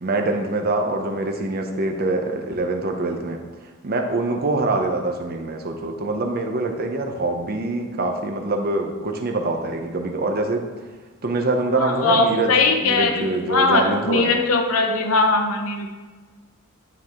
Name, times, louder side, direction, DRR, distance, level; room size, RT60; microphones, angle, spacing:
voice 1, 0.0-3.4 3.8-10.7 11.2-12.5 12.8-14.4, right 2 dB, 45° right, 4 dB, 0.7 m, -24 dB
voice 2, 11.8-15.9, left 3 dB, 80° left, 3 dB, 1.0 m, -20 dB
9.2 x 4.7 x 3.6 m, 1.4 s
head